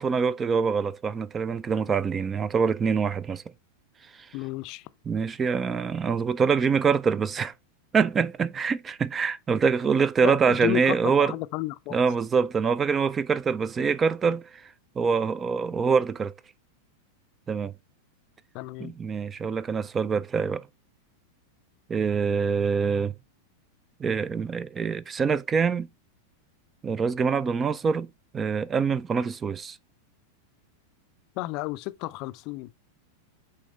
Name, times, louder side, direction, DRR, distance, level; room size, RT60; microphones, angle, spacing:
voice 1, 0.0-3.4 5.1-7.5 7.9-11.3 11.9-16.3 17.5-17.7 18.8-20.7 21.9-23.1 24.0-25.9 26.8-28.1 28.3-29.8, right 5 dB, 20° right, 0.3 m, -25 dB
voice 2, 4.3-4.8 10.2-12.0 18.5-18.9 31.4-32.7, left 18 dB, 40° left, 0.4 m, -32 dB
8.1 x 3.4 x 3.4 m
figure-of-eight pair, 90°, 0 cm